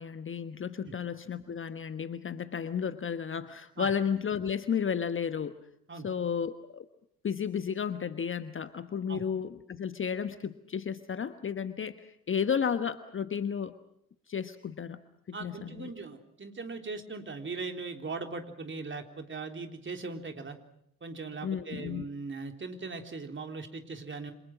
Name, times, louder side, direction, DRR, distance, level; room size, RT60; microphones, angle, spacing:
voice 1, 0.0-5.6 6.0-6.9 7.2-13.7 14.3-15.0 15.3-15.9 21.4-22.0, left 7 dB, 25° left, 12 dB, 1.2 m, -33 dB
voice 2, 15.3-20.6 21.0-24.3, right 4 dB, 25° right, 5 dB, 3.7 m, -39 dB
28.0 x 26.5 x 6.2 m, 0.74 s
figure-of-eight pair, 55°, 46 cm